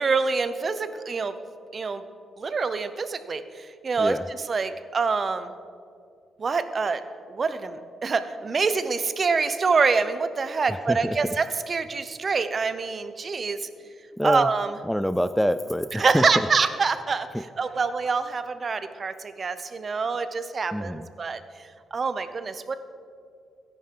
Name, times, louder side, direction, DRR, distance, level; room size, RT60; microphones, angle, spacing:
voice 1, 0.0-1.3 1.7-2.0 2.4-4.1 4.5-5.5 6.4-7.0 7.3-13.7 14.2-14.7 15.9-17.3 17.6-21.4 21.9-22.8, right 4 dB, 40° right, 11 dB, 0.7 m, -26 dB
voice 2, 10.7-11.2 14.2-14.5 14.8-16.3 17.3-17.4 20.7-21.1, equal, ahead, 12 dB, 0.3 m, -26 dB
16.5 x 10.5 x 3.8 m, 2.3 s
cardioid pair, 90°, 0 cm